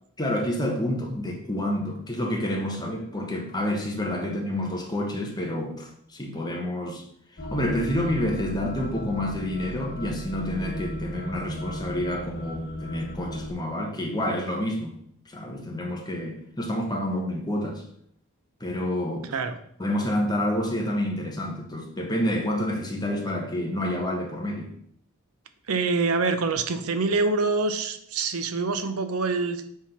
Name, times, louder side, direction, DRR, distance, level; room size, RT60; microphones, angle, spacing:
voice 1, 0.2-7.0 7.4-15.0 15.3-17.8 18.6-19.3 19.8-24.7, left 1 dB, 20° left, 1.3 m, -28 dB
sound 1, 7.4-13.5, equal, 55° left, 1.1 m, -35 dB
voice 2, 19.2-19.6 25.7-29.6, right 3 dB, 90° right, 0.8 m, -25 dB
7.4 x 3.8 x 5.8 m
head